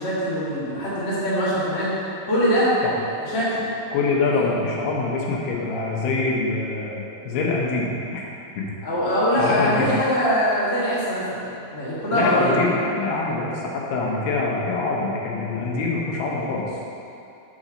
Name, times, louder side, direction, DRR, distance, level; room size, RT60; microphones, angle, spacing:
voice 1, 0.0-1.9 2.2-2.7 3.2-3.6 4.3-4.5 8.8-11.4 11.7-12.6, equal, 25° left, -9 dB, 1.3 m, -22 dB
voice 2, 3.9-8.2 8.6-8.7 9.4-9.9 12.1-16.8, left 3 dB, 80° left, -3 dB, 2.9 m, -25 dB
7.2 x 5.1 x 6.3 m, 2.7 s
omnidirectional pair, 4.5 m